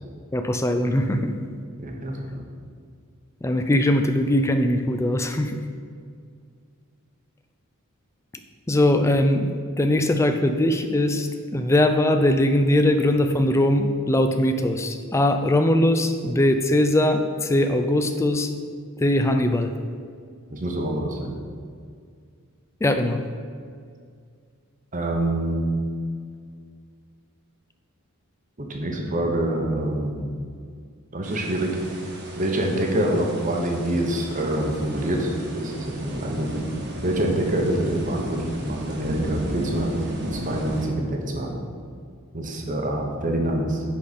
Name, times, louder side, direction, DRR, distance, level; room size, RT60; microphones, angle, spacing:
voice 1, 0.3-1.3 3.4-5.6 8.7-9.5 9.8-18.5 19.0-19.7 22.8-23.2, left 1 dB, 15° left, 7 dB, 0.3 m, -21 dB
voice 2, 1.8-2.4 20.5-21.3 24.9-25.7 28.6-30.3 31.1-31.7 32.4-36.6 37.0-39.9 40.3-41.6 42.3-43.8, right 1 dB, 35° right, 1 dB, 0.9 m, -26 dB
sound 1, 31.2-40.9, equal, 50° right, 1.2 m, -34 dB
10.0 x 4.2 x 4.1 m, 2.1 s
head